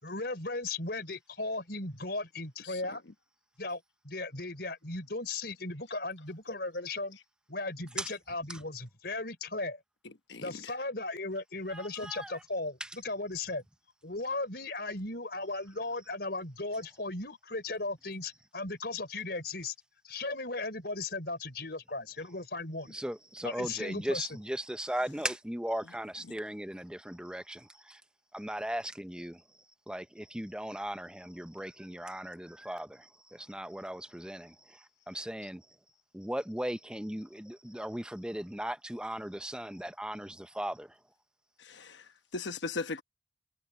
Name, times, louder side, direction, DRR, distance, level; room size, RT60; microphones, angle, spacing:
voice 1, 0.0-3.0 3.6-7.2 7.5-9.8 10.4-13.6 14.0-19.7 20.0-23.0 23.4-24.4, left 2 dB, 60° left, 5.3 m, -36 dB
voice 2, 2.6-3.0 10.0-10.7 26.2-26.4 41.6-43.0, left 3 dB, 80° left, 1.0 m, -39 dB
voice 3, 11.7-12.4 22.9-28.0 28.3-29.4 29.9-35.7 36.1-41.0, right 1 dB, 5° right, 0.6 m, -38 dB
head